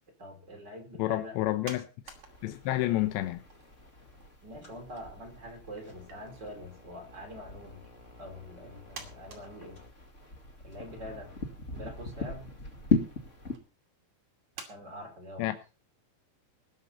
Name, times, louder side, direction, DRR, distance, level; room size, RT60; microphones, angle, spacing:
voice 1, 0.2-1.4 4.4-7.8 8.2-9.8 10.6-11.3 11.7-12.5 14.6-15.5, left 1 dB, 25° right, 3 dB, 3.1 m, -45 dB
voice 2, 1.0-1.9 2.4-3.4 15.4-15.6, left 16 dB, 75° left, 8 dB, 2.9 m, -29 dB
sound 1, 1.6-2.9 3.2-4.5 4.8-4.9 5.8-6.2 7.0-7.4 8.2-8.3 8.9-10.4 10.9-11.0 11.4-12.0 12.7-13.0 13.5-13.6 14.5-14.7, right 5 dB, 45° right, 3.1 m, -48 dB
sound 2, 2.0-13.6, left 4 dB, 55° left, 0.8 m, -38 dB
20.0 x 7.9 x 5.5 m, 0.33 s
omnidirectional pair, 5.6 m